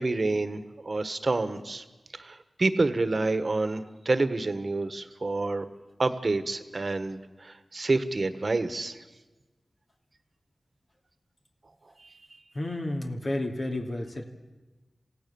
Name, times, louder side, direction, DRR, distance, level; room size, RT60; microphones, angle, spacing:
voice 1, 0.0-1.8 2.1-5.7 6.0-9.0 12.0-12.4, right 3 dB, 55° right, 11 dB, 1.5 m, -28 dB
voice 2, 12.5-14.2, left 1 dB, 55° left, 1 dB, 2.7 m, -31 dB
28.0 x 16.0 x 7.2 m, 1.2 s
cardioid pair, 45°, 0 cm